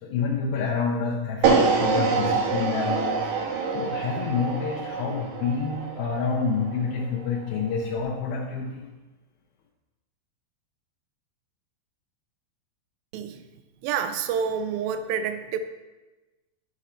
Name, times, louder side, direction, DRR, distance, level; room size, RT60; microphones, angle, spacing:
voice 1, 0.0-3.3 3.7-8.9, left 5 dB, 90° left, -3 dB, 2.7 m, -28 dB
sound 1, 1.4-7.6, right 5 dB, 70° right, 2.0 m, -26 dB
voice 2, 13.8-15.6, right 7 dB, 90° right, 8 dB, 2.4 m, -28 dB
9.3 x 5.1 x 4.3 m, 1.1 s
omnidirectional pair, 4.1 m